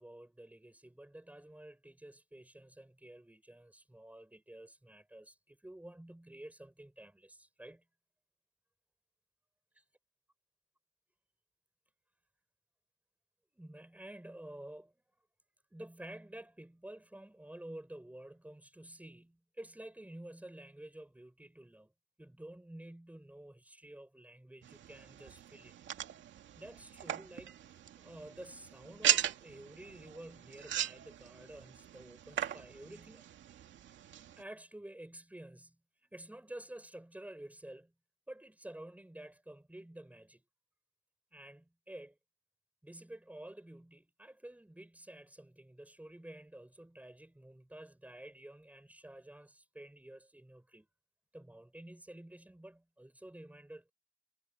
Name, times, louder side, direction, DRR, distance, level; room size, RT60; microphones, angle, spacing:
voice 1, 0.0-7.8 13.5-15.0 15.7-21.9 22.2-25.7 26.1-26.2 26.6-33.2 34.4-37.9 38.3-40.4 41.3-42.2 42.8-50.9 51.3-53.9, right 1 dB, 5° right, 7.4 m, -51 dB
sound 1, 24.6-34.4, right 10 dB, 70° right, 2.3 m, -38 dB
cardioid pair, 90°, 20 cm